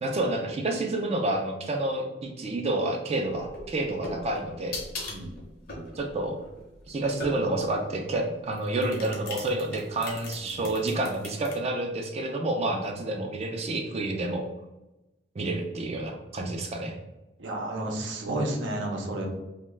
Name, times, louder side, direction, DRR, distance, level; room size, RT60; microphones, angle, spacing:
voice 1, 0.0-4.8 5.9-6.4 6.9-14.5 15.4-17.0, right 2 dB, 35° right, 3 dB, 0.3 m, -29 dB
sound 1, 3.4-7.7 8.5-11.5, left 2 dB, 55° left, 0.7 m, -39 dB
voice 2, 10.4-10.8 17.4-19.3, right 1 dB, 85° right, 1 dB, 0.6 m, -32 dB
2.2 x 2.1 x 3.1 m, 0.98 s
head